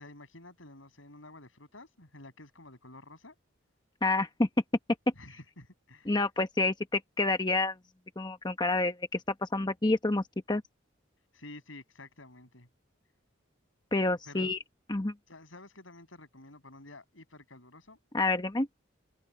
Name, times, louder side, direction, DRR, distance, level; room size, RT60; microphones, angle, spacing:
voice 1, 0.0-3.3 5.2-6.1 11.3-12.7 14.3-14.5 15.3-18.0, left 2 dB, 85° left, 6.6 m, -51 dB
voice 2, 4.0-4.5 6.1-7.8 8.2-10.6 13.9-14.6 14.9-15.1 18.1-18.7, left 2 dB, 20° left, 1.0 m, -28 dB
head